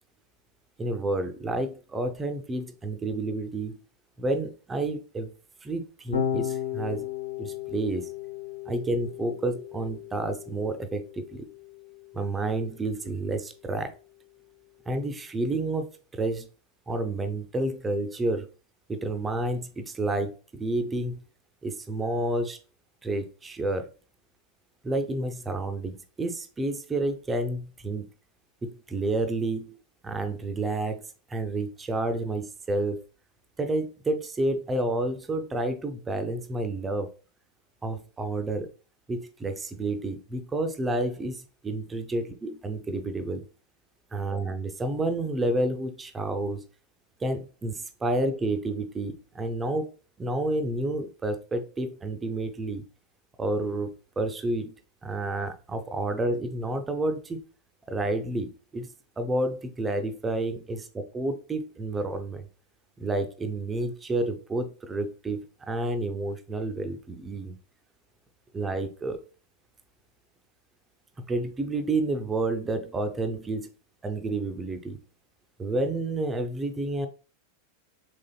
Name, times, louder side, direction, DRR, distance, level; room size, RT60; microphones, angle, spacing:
voice 1, 0.8-3.8 4.2-5.3 5.6-7.0 7.4-8.1 8.7-11.5 12.1-13.9 14.9-15.9 16.1-16.5 16.9-18.5 18.9-21.2 21.6-22.6 23.0-23.9 24.8-28.1 28.6-29.8 30.0-31.0 31.3-33.0 33.6-37.1 37.8-38.7 39.1-43.4 44.1-46.6 47.2-49.9 50.2-52.8 53.4-54.7 55.0-57.4 57.9-58.9 59.2-62.5 63.0-67.6 68.5-69.2 71.3-73.7 74.0-75.0 75.6-77.1, right 2 dB, 15° right, 0.4 m, -30 dB
Electric guitar / Bass guitar, 6.1-12.5, left 9 dB, 75° left, 0.6 m, -35 dB
3.8 x 3.1 x 2.3 m
figure-of-eight pair, 90°, 0 cm